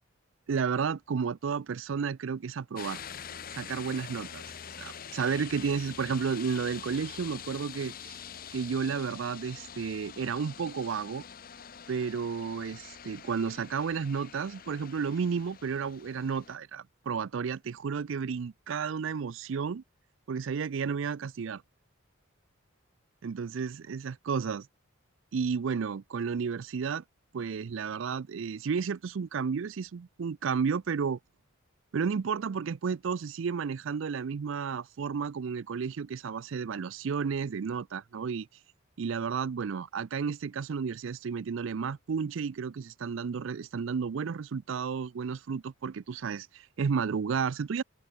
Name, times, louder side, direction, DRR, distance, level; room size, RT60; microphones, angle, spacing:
voice 1, 0.5-3.0 3.5-4.5 4.8-8.2 8.5-11.2 11.9-19.8 20.3-21.6 23.2-24.7 25.3-27.0 27.3-31.2 31.9-38.5 39.0-47.8, right 6 dB, 65° right, 0.4 m, -32 dB
sound 1, 2.8-16.6, left 8 dB, 40° left, 0.8 m, -45 dB
head